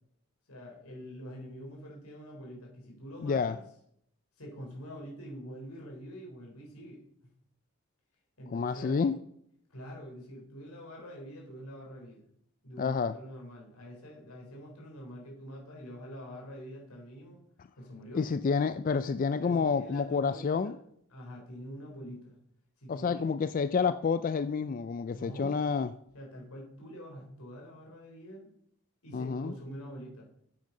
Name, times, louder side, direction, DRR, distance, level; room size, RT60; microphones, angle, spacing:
voice 1, 0.5-3.6 4.4-7.0 8.4-9.1 9.7-12.2 12.6-17.4 17.8-18.2 19.4-20.8 21.1-22.4 22.8-23.3 25.1-25.6 26.1-28.5 29.0-30.3, equal, 90° left, 4.0 m, -45 dB
voice 2, 3.2-3.6 8.5-9.2 12.8-13.1 18.1-20.8 22.9-25.9 29.1-29.5, left 5 dB, 40° left, 0.3 m, -29 dB
9.1 x 7.8 x 5.4 m
head